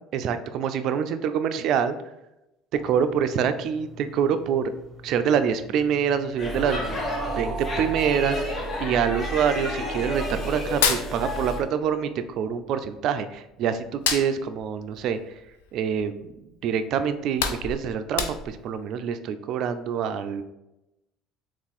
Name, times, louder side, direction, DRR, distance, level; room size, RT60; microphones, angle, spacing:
voice 1, 0.1-2.0 2.7-4.7 5.0-7.1 7.4-15.3 15.7-16.3 16.6-20.4, right 7 dB, 60° right, 10 dB, 0.3 m, -26 dB
sound 1, 2.7-8.1, right 3 dB, 30° right, 0.7 m, -39 dB
Speech / Shout / Subway metro underground, 6.4-11.6, equal, 35° left, 1.0 m, -31 dB
Hands, 10.7-11.9 12.2-13.4 13.8-16.2 16.6-16.7 17.1-18.7, left 7 dB, 85° left, 0.4 m, -29 dB
3.5 x 2.4 x 4.1 m, 0.92 s
hypercardioid pair, 75°, 0 cm